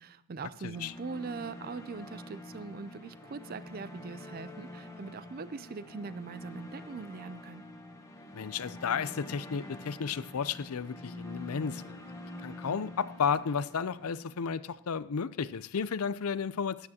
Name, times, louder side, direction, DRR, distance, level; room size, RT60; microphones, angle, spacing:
voice 1, 0.0-7.6, right 4 dB, 40° right, 0.4 m, -42 dB
sound 1, 0.7-14.8, left 2 dB, 15° left, 1.3 m, -46 dB
voice 2, 8.3-12.0 12.4-16.9, left 6 dB, 75° left, 0.5 m, -33 dB
12.5 x 11.0 x 2.9 m
head